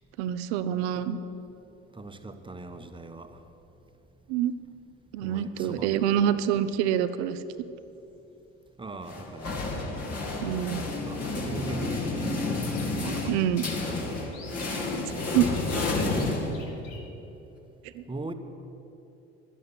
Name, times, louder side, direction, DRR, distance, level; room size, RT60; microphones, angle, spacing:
voice 1, 0.2-1.2 4.3-4.5 5.1-7.4 10.4-10.8 13.3-13.6 14.9-15.0 15.3-15.5 17.9-18.0, right 10 dB, 75° right, 12 dB, 0.8 m, -26 dB
voice 2, 1.9-3.4 5.2-6.2 8.8-9.6 11.0-12.3 13.0-13.5 13.9-14.4 18.1-18.3, right 2 dB, 15° right, 7 dB, 1.2 m, -40 dB
sound 1, 7.7-8.0 9.6-9.7 10.1-10.2 12.5-17.0, left 4 dB, 70° left, 2.4 m, -49 dB
sound 2, 9.1-17.0, left 2 dB, 45° left, 2.8 m, -30 dB
11.0 x 11.0 x 8.1 m, 2.9 s
hypercardioid pair, 65°, 34 cm